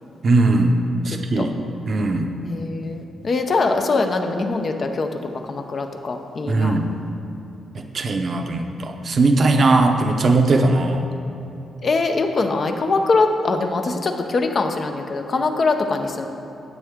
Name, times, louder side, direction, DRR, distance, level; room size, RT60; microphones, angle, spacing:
voice 1, 0.2-0.8 1.1-1.5 1.9-2.3 6.5-6.9 7.7-11.1, right 2 dB, 45° right, 4 dB, 0.7 m, -19 dB
voice 2, 2.4-5.1 5.4-6.8 11.8-16.3, left 3 dB, 45° left, 5 dB, 0.7 m, -22 dB
9.7 x 7.6 x 3.7 m, 2.9 s
cardioid pair, 100°, 0 cm